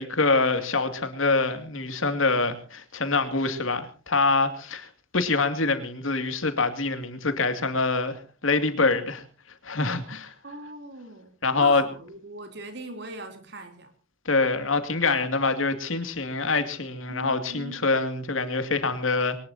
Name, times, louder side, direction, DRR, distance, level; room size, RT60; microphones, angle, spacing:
voice 1, 0.0-9.2 9.6-10.3 11.4-11.8 14.3-19.4, left 3 dB, 90° left, 2.5 m, -25 dB
voice 2, 10.4-13.9 17.1-17.8, right 1 dB, 60° right, 3.4 m, -40 dB
23.0 x 19.5 x 2.8 m
head